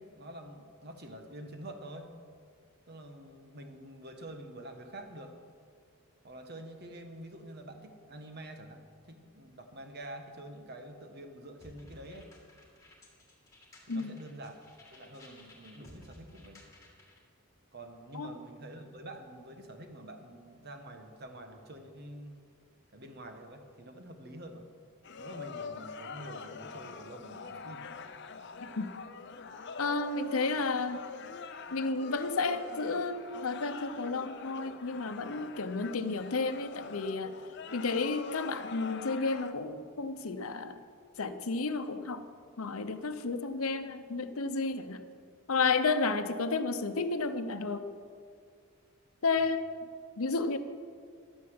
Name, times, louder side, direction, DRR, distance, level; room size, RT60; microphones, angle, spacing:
voice 1, 0.0-2.1 2.9-5.3 6.2-12.3 13.9-16.7 17.7-22.4 22.9-24.7 25.2-28.0, right 1 dB, 50° right, 5 dB, 1.4 m, -47 dB
sound 1, 11.6-17.2, left 1 dB, 15° left, 2.5 m, -56 dB
sound 2, 25.0-39.5, left 4 dB, 55° left, 0.7 m, -44 dB
voice 2, 29.8-31.0 31.7-37.3 37.7-40.8 41.2-42.2 42.6-45.0 45.5-47.9 49.2-49.6 50.2-50.6, left 4 dB, 80° left, 9 dB, 0.9 m, -32 dB
11.5 x 9.4 x 7.9 m, 2.1 s
head